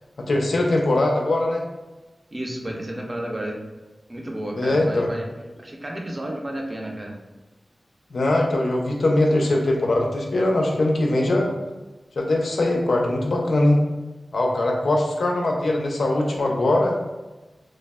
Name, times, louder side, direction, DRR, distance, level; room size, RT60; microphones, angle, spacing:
voice 1, 0.2-1.6 4.6-5.1 8.1-11.5 12.2-13.8 14.3-17.0, left 1 dB, 80° left, -1 dB, 0.4 m, -21 dB
voice 2, 2.3-3.6 4.1-5.3 5.6-7.2, right 1 dB, 30° right, 0 dB, 0.4 m, -31 dB
3.2 x 2.0 x 2.2 m, 1.1 s
wide cardioid pair, 105°, 0 cm